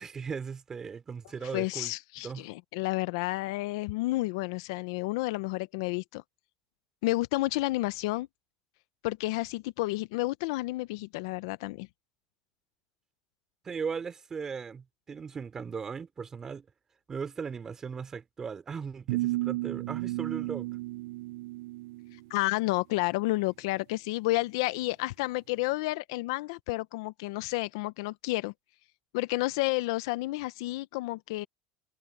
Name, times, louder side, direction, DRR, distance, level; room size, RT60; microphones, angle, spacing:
voice 1, 0.0-1.9 2.2-2.4 13.6-16.6 17.1-20.7, right 6 dB, 20° right, 3.1 m, -38 dB
voice 2, 1.5-6.2 7.0-8.3 9.0-11.9 22.3-28.5 29.1-31.5, left 20 dB, 75° left, 0.6 m, -31 dB
sound 1, 19.1-22.2, right 20 dB, 75° right, 0.4 m, -33 dB
supercardioid pair, 145°, 2 cm